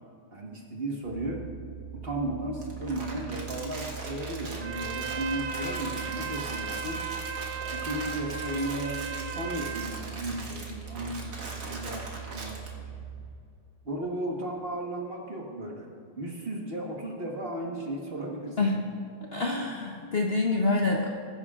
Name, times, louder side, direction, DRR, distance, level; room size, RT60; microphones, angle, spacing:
voice 1, 0.3-1.4 1.9-7.0 7.7-12.8 13.8-18.7, right 1 dB, 35° right, -1 dB, 1.2 m, -35 dB
sound 1, 1.0-13.3, right 8 dB, 60° left, 3.2 m, -42 dB
Crumpling crinkling, 2.6-12.7, right 2 dB, 50° right, 2.1 m, -41 dB
Trumpet, 4.6-10.0, right 5 dB, 80° right, 1.6 m, -36 dB
voice 2, 19.3-21.1, left 3 dB, 85° left, -1 dB, 0.5 m, -26 dB
21.5 x 10.0 x 2.4 m, 2.3 s
omnidirectional pair, 2.4 m